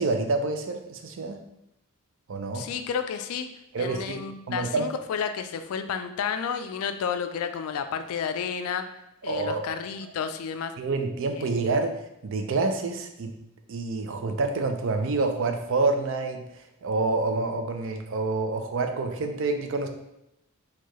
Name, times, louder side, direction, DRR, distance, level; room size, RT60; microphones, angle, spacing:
voice 1, 0.0-1.4 2.3-2.7 3.7-4.2 4.5-4.9 9.3-9.7 10.8-13.3 13.7-19.9, right 3 dB, 60° right, 6 dB, 0.4 m, -27 dB
voice 2, 2.5-3.5 3.8-8.9 9.2-10.7, left 7 dB, 75° left, 8 dB, 0.3 m, -31 dB
4.5 x 2.3 x 3.0 m, 0.85 s
head